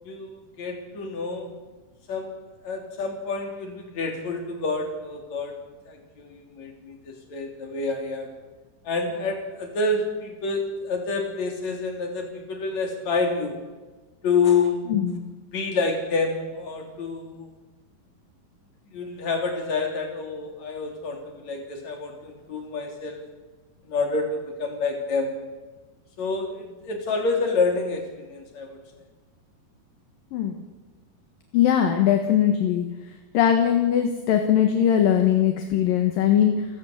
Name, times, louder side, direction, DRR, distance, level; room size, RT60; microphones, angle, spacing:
voice 1, 0.0-1.5 2.1-2.3 2.6-5.5 5.9-8.3 8.8-13.6 14.2-14.8 15.5-17.5 18.9-23.2 23.8-25.4 26.2-28.8, left 4 dB, 40° left, 3 dB, 4.3 m, -28 dB
voice 2, 14.9-15.2 30.3-30.6 31.5-32.8 33.3-36.7, left 9 dB, 65° left, 5 dB, 2.9 m, -20 dB
29.0 x 14.0 x 8.0 m, 1.2 s
omnidirectional pair, 5.0 m